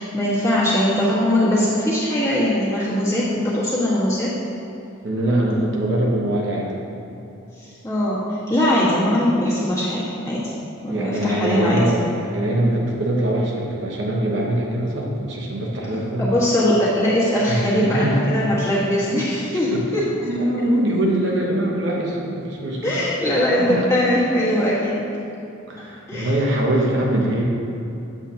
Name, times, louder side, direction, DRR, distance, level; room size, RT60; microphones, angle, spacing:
voice 1, 0.0-4.3 7.8-10.5 10.8-11.8 16.2-20.0 22.8-25.0 26.1-26.3, left 1 dB, 15° left, -9 dB, 1.5 m, -21 dB
voice 2, 5.0-6.7 10.9-16.3 17.5-18.4 19.5-23.0 23.6-23.9 25.7-27.4, right 1 dB, 55° right, -2 dB, 1.0 m, -23 dB
8.2 x 7.2 x 2.8 m, 2.8 s
head